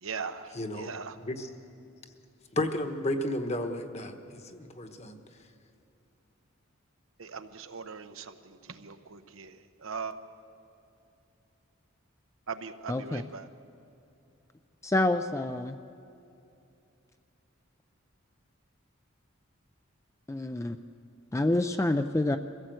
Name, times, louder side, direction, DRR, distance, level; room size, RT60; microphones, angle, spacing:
voice 1, 0.0-1.2 7.2-10.2 12.5-13.5, right 5 dB, 80° right, 9 dB, 0.9 m, -40 dB
voice 2, 0.5-0.9 1.2-1.5 2.5-5.2, left 1 dB, 30° left, 7 dB, 1.2 m, -33 dB
voice 3, 12.9-13.2 14.8-15.8 20.3-20.8 21.3-22.4, left 2 dB, 15° left, 7 dB, 0.4 m, -27 dB
23.5 x 15.5 x 7.8 m, 2.7 s
head